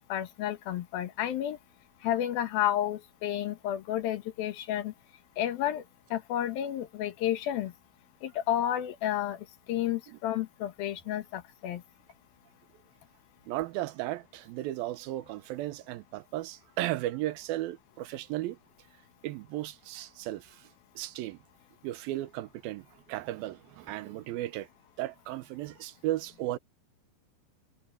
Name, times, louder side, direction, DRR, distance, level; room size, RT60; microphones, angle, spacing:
voice 1, 0.1-1.6 2.0-4.9 5.4-5.8 6.1-7.7 8.2-9.4 9.7-11.8, left 11 dB, 80° left, 3.3 m, -31 dB
voice 2, 13.5-18.6 19.2-20.6 21.0-21.4 21.8-24.7 25.0-26.6, right 15 dB, 85° right, 2.7 m, -35 dB
omnidirectional pair, 4.1 m